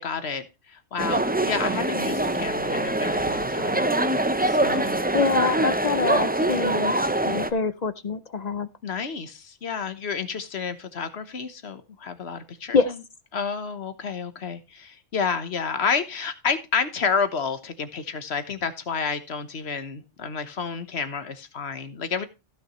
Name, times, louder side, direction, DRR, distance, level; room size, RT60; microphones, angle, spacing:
voice 1, 0.0-5.0 5.6-5.7 8.8-13.0 13.3-22.3, left 5 dB, 65° left, 11 dB, 1.3 m, -30 dB
sound 1, 1.0-7.5, right 1 dB, 15° right, 0.4 m, -24 dB
voice 2, 5.1-6.9 7.3-8.7 12.7-12.9, left 5 dB, 50° left, 14 dB, 0.5 m, -25 dB
15.0 x 6.6 x 3.1 m, 0.28 s
omnidirectional pair, 1.2 m